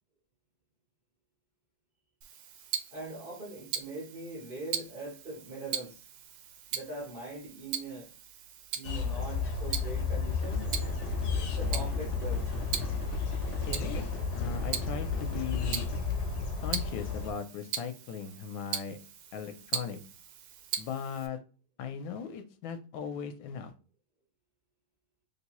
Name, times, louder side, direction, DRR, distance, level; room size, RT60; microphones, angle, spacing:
Tick-tock, 2.2-21.3, right 9 dB, 80° right, 1.3 m, -40 dB
voice 1, 2.9-6.0 6.7-8.1 8.7-10.7 11.4-12.5, right 2 dB, 40° right, -4 dB, 0.8 m, -41 dB
sound 1, 8.8-17.3, left 5 dB, 70° left, 1.0 m, -33 dB
sound 2, 10.4-16.0, right 1 dB, 10° left, 1.3 m, -40 dB
voice 2, 13.7-14.1 14.3-15.9 16.6-19.0 19.3-20.0 20.8-21.4 21.8-23.7, left 7 dB, 85° left, 8 dB, 1.4 m, -38 dB
3.3 x 3.0 x 2.9 m, 0.36 s
omnidirectional pair, 2.1 m